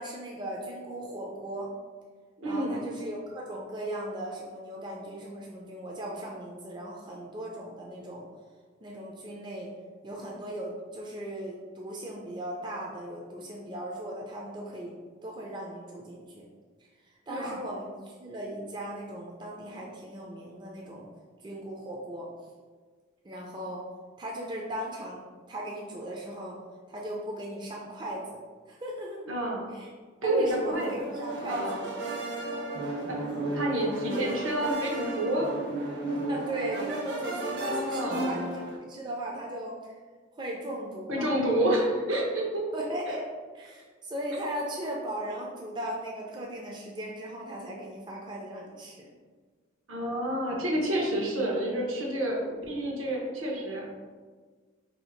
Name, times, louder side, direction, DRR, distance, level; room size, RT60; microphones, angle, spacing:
voice 1, 0.0-1.7 2.4-8.2 8.8-9.7 10.0-14.9 15.2-16.5 17.3-21.1 21.4-22.3 23.2-23.8 24.2-26.5 26.9-29.2 29.7-29.9 30.2-31.8 36.3-38.5 38.8-40.0 40.3-41.3 42.7-43.3 43.5-49.1, right 1 dB, 20° right, -2 dB, 0.3 m, -37 dB
voice 2, 2.4-2.8 17.3-17.6 29.2-29.6 30.2-30.9 31.5-31.8 33.1-33.3 33.5-35.5 37.6-38.2 41.1-42.6 43.1-43.2 49.9-53.9, right 1 dB, 80° right, -2 dB, 0.9 m, -29 dB
sound 1, 30.5-38.8, right 2 dB, 55° right, 0.7 m, -34 dB
2.7 x 2.7 x 4.3 m, 1.5 s
head